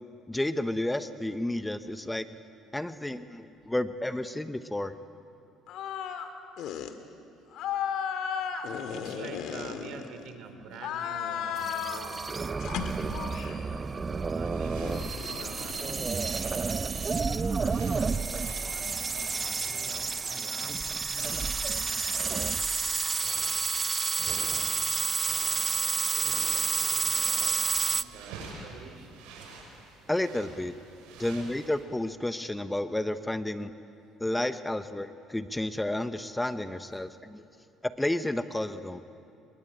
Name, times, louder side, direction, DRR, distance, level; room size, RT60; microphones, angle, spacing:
voice 1, 0.3-2.3 2.7-4.9 30.1-30.7 31.2-33.7 34.2-37.4 37.8-39.0, left 1 dB, 10° left, 11 dB, 1.0 m, -31 dB
sound 1, 5.7-6.3 6.6-6.9 7.5-10.3 10.7-12.1 12.6-13.7 14.8-16.6, left 8 dB, 70° left, 2.0 m, -34 dB
voice 2, 8.9-13.4 14.1-17.9 18.6-20.9 24.3-24.7 25.5-29.1 31.0-31.3, right 5 dB, 70° right, 7 dB, 3.9 m, -48 dB
sound 2, 11.6-28.0, right 4 dB, 30° right, 0.7 m, -30 dB
sound 3, 14.4-22.7 23.0-31.8, right 4 dB, 90° right, 5.9 m, -48 dB
29.5 x 22.5 x 8.9 m, 2.7 s
supercardioid pair, 90°, 0 cm